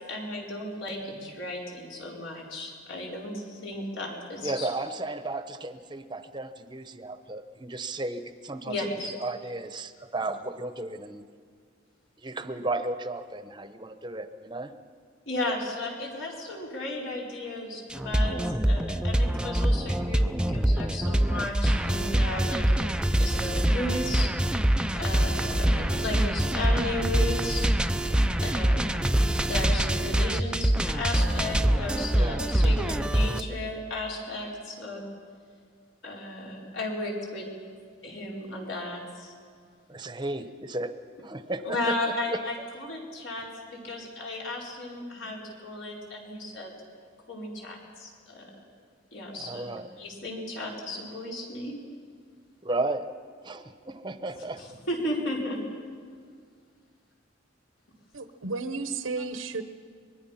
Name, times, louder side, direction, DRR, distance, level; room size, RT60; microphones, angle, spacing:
voice 1, 0.1-4.7 8.7-9.1 15.3-18.4 18.6-24.3 25.0-27.7 28.4-29.1 29.4-35.0 36.0-37.5 38.0-39.3 41.6-46.7 47.3-48.5 49.1-51.8 54.6-55.6, left 1 dB, 70° left, -2 dB, 4.7 m, -34 dB
voice 2, 4.4-8.9 9.2-11.2 12.2-14.7 32.1-32.4 39.9-40.9 41.2-42.4 49.3-49.9 52.6-53.0 53.5-53.6 53.9-54.6, right 2 dB, 25° right, 9 dB, 0.9 m, -34 dB
sound 1, 17.9-33.4, right 1 dB, 5° right, 0.5 m, -25 dB
voice 3, 58.1-59.6, right 3 dB, 85° right, 10 dB, 1.0 m, -33 dB
24.5 x 21.0 x 5.8 m, 2.1 s
head